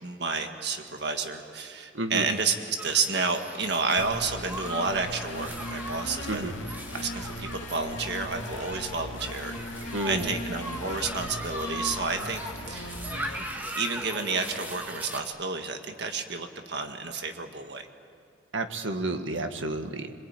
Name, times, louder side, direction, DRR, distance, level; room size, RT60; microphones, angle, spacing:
voice 1, 0.0-6.5 6.9-12.4 12.7-12.9 13.4-13.5 13.8-17.9, right 4 dB, 60° right, 5 dB, 1.8 m, -30 dB
voice 2, 1.9-2.3 6.3-6.5 9.9-10.4 18.5-20.1, right 2 dB, 90° right, 6 dB, 1.8 m, -31 dB
sound 1, 2.8-15.2, right 1 dB, 10° right, 2.1 m, -39 dB
sound 2, 4.0-13.4, left 1 dB, 85° left, 2.2 m, -38 dB
26.5 x 23.5 x 9.0 m, 2.3 s
head